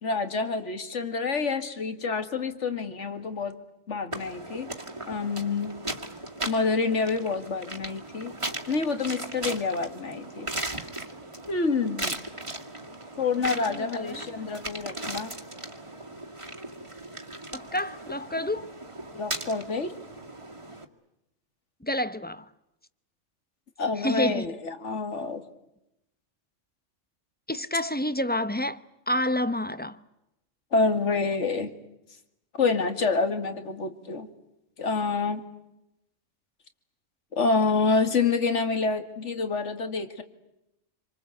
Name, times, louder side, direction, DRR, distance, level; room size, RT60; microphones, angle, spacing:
voice 1, 0.0-3.6 3.9-4.7 5.1-5.7 6.5-8.4 8.7-10.5 11.5-12.2 13.2-15.3 19.2-19.9 23.8-25.4 30.7-31.7 32.6-34.3 34.8-35.4 37.3-40.2, left 4 dB, 70° left, 2.3 m, -27 dB
sound 1, 4.1-20.8, right 2 dB, 25° right, 2.2 m, -38 dB
voice 2, 13.4-14.5 17.5-18.7 21.8-22.5 24.0-24.5 27.5-30.0, left 1 dB, 10° left, 0.8 m, -29 dB
27.5 x 25.5 x 8.3 m
omnidirectional pair, 1.3 m